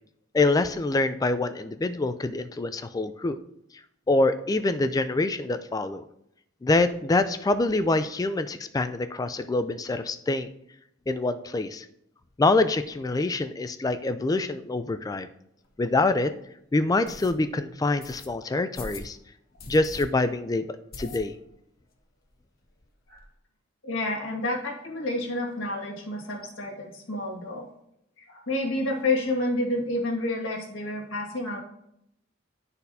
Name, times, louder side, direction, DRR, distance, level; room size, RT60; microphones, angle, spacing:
voice 1, 0.3-3.4 4.1-6.0 6.6-10.5 11.1-11.9 12.4-15.3 15.8-16.3 16.7-19.2 19.7-20.7 21.0-21.4, left 2 dB, 20° left, 11 dB, 0.3 m, -25 dB
sound 1, 15.6-15.7 16.2-16.3 17.0-17.3 18.0-18.3 18.7-19.1 19.6-20.0 20.4-20.5 20.9-21.6 21.9-22.0 22.3-22.4 22.6-23.2, left 2 dB, 50° left, 1.2 m, -42 dB
voice 2, 23.8-27.7 28.3-31.6, left 2 dB, 70° left, 0 dB, 1.8 m, -29 dB
11.5 x 4.1 x 2.7 m, 0.76 s
head